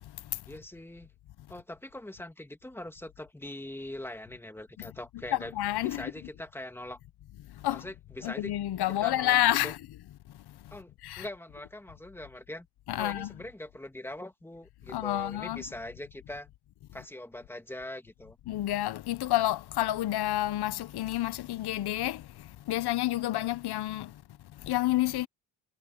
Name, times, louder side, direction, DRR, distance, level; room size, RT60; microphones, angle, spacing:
voice 1, 0.5-1.1 1.5-7.0 7.7-8.5 9.0-9.7 10.7-12.7 13.0-16.5 16.9-18.4, left 1 dB, 5° left, 2.0 m, -42 dB
voice 2, 5.6-6.1 7.6-7.8 8.2-9.8 11.0-11.2 12.9-13.3 14.9-15.6 18.5-22.2 22.7-24.1 24.7-25.3, left 15 dB, 60° left, 0.7 m, -29 dB
cardioid pair, 150°, 45 cm